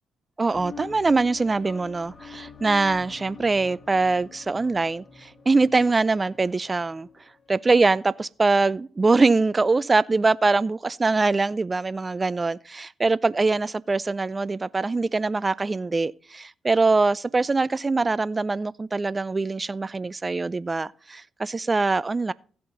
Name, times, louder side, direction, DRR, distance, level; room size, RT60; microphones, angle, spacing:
voice 1, 0.4-7.1 7.5-22.3, right 3 dB, 30° right, 0.4 m, -23 dB
sound 1, 0.5-7.9, left 5 dB, 40° left, 2.8 m, -45 dB
16.0 x 5.7 x 4.0 m
supercardioid pair, 55°, 0 cm